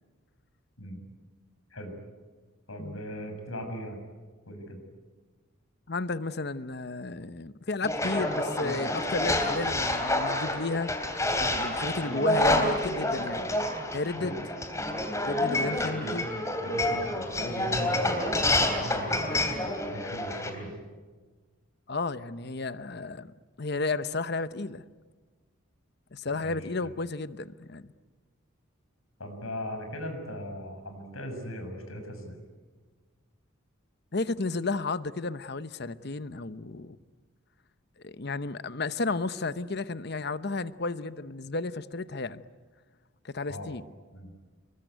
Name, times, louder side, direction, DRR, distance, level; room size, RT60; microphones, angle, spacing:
voice 1, 2.7-4.0 4.5-4.8 14.2-14.4 15.8-16.2 16.6-19.5 19.8-20.7 26.4-26.9 29.2-32.4 43.5-43.7 44.1-44.3, equal, 85° left, 6.6 m, -39 dB
voice 2, 5.9-10.9 11.5-13.5 13.9-14.4 15.2-16.3 21.9-23.3 23.6-24.8 26.1-27.8 34.1-37.0 38.0-42.4 43.2-43.8, left 3 dB, 50° left, 0.9 m, -32 dB
sound 1, 7.8-20.5, left 1 dB, 15° left, 3.2 m, -28 dB
27.0 x 23.0 x 9.4 m
head